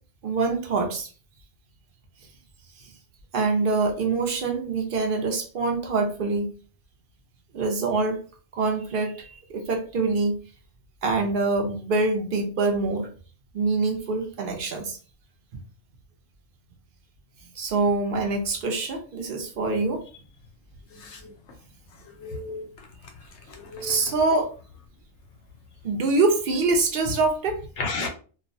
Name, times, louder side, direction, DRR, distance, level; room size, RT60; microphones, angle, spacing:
voice 1, 0.2-1.1 3.3-6.5 7.5-8.2 8.5-10.3 11.0-13.1 13.5-15.0 17.6-20.0 23.8-24.5 25.8-27.6, right 3 dB, 60° right, 0.6 m, -25 dB
voice 2, 20.9-21.3 22.2-22.7 23.5-24.1 27.8-28.1, left 3 dB, 65° left, 0.8 m, -33 dB
2.3 x 2.1 x 2.5 m
omnidirectional pair, 1.3 m